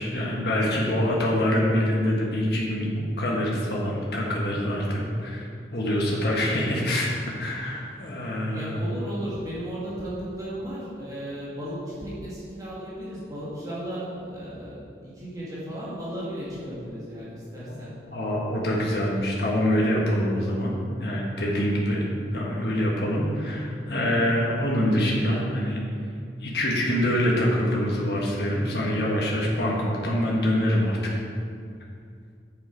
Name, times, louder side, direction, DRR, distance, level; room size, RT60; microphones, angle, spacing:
voice 1, 0.0-2.9 3.2-8.7 17.7-20.7 21.0-22.0 22.3-25.8 26.4-31.1, equal, 65° left, -3 dB, 1.4 m, -25 dB
voice 2, 8.5-17.9, equal, 20° right, -9 dB, 2.0 m, -35 dB
7.5 x 7.2 x 4.7 m, 2.3 s
head